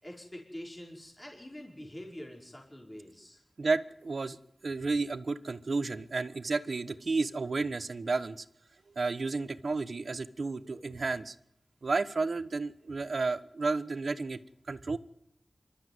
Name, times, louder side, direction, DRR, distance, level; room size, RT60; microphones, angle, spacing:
voice 1, 0.0-3.4, equal, 20° left, 0 dB, 5.0 m, -45 dB
voice 2, 3.6-4.4 4.6-8.4 9.0-11.3 11.8-14.4 14.7-15.0, right 3 dB, 70° right, 14 dB, 1.1 m, -32 dB
26.0 x 13.0 x 9.5 m, 0.75 s
wide cardioid pair, 70°, 0 cm